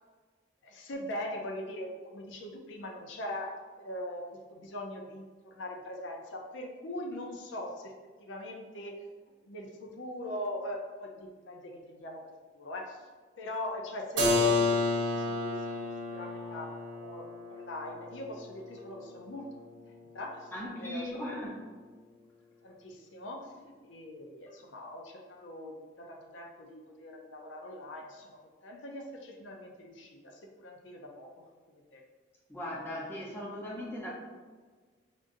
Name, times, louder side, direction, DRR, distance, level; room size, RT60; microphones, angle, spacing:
voice 1, 0.6-7.9 8.2-8.9 9.4-13.1 13.4-19.4 20.1-20.5 20.8-21.1 22.6-32.0, left 1 dB, 85° left, 1 dB, 0.6 m, -42 dB
Keyboard (musical), 14.2-19.8, left 2 dB, 85° right, 0.9 m, -31 dB
voice 2, 20.5-21.6 32.5-34.1, left 1 dB, 10° left, -5 dB, 0.7 m, -38 dB
5.2 x 2.5 x 2.6 m, 1.5 s
head